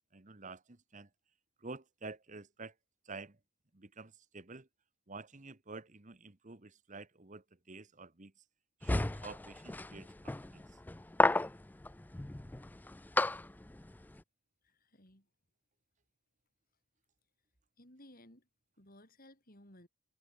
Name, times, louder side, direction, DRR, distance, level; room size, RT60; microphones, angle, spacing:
voice 1, 0.1-1.1 1.6-2.7 3.0-3.3 3.7-4.7 5.1-8.3 8.8-10.6, right 3 dB, 35° right, 1.2 m, -49 dB
sound 1, 8.8-14.2, left 2 dB, 10° left, 0.3 m, -33 dB
voice 2, 14.6-15.3 17.8-18.5 18.8-19.9, left 1 dB, 40° left, 7.2 m, -58 dB
head